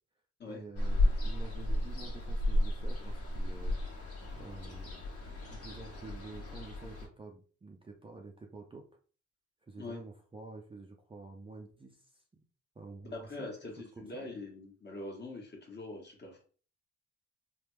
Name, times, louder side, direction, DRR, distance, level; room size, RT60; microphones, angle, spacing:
voice 1, 0.5-3.8 4.3-5.1 5.5-8.9 9.6-12.2 12.8-13.5 14.0-14.3, right 3 dB, 20° right, 1 dB, 0.5 m, -49 dB
Ocean, 0.8-7.1, left 1 dB, 50° left, 1.3 m, -33 dB
voice 2, 13.1-16.4, left 2 dB, 35° left, 0 dB, 1.3 m, -43 dB
3.4 x 2.3 x 3.1 m, 0.40 s
cardioid pair, 90°, 30 cm